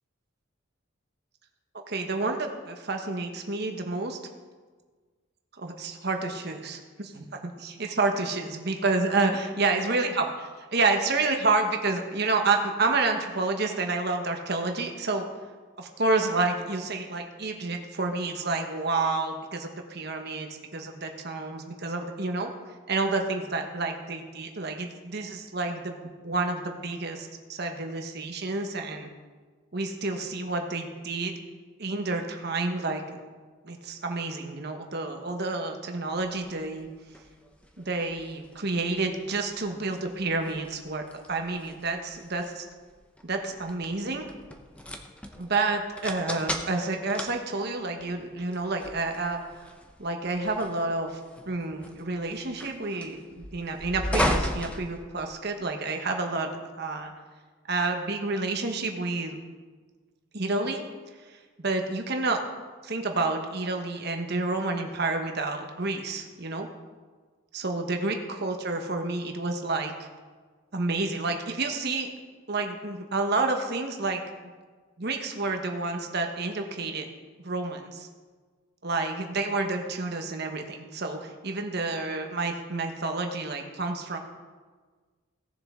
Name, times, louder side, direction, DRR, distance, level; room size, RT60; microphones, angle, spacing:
voice 1, 1.9-4.2 5.6-15.2 15.8-22.5 22.9-26.0 26.2-29.1 29.7-31.3 31.8-33.0 33.6-36.9 37.8-42.6 43.2-44.3 45.4-49.4 50.0-51.2 51.5-56.5 56.8-57.1 57.7-59.4 60.3-60.8 61.3-62.4 62.8-66.7 67.5-70.1 70.7-72.1 72.5-74.2 75.0-77.1 77.4-78.1 78.8-84.2, right 3 dB, 50° right, 4 dB, 1.2 m, -29 dB
sound 1, 36.2-55.6, equal, 5° left, 0.7 m, -36 dB
17.5 x 6.9 x 3.7 m, 1.4 s
head